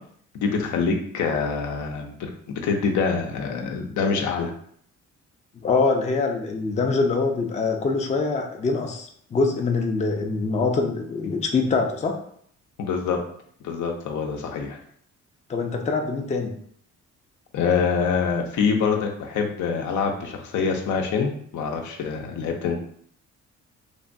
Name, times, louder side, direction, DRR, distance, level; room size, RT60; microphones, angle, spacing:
voice 1, 0.3-4.5 12.8-13.2 13.6-14.8 17.5-22.8, left 5 dB, 75° left, 3 dB, 0.6 m, -25 dB
voice 2, 5.5-12.2 15.5-16.6, left 4 dB, 25° left, 2 dB, 0.4 m, -24 dB
3.2 x 2.2 x 2.6 m, 0.62 s
cardioid pair, 90°, 30 cm